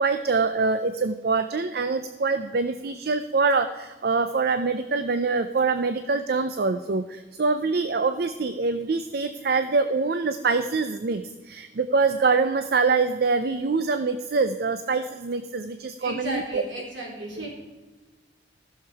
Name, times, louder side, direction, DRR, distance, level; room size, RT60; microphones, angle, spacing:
voice 1, 0.0-16.6, right 4 dB, 55° right, 10 dB, 0.5 m, -24 dB
voice 2, 16.0-17.5, right 1 dB, 90° right, -2 dB, 3.5 m, -34 dB
14.5 x 6.6 x 4.7 m, 1.2 s
head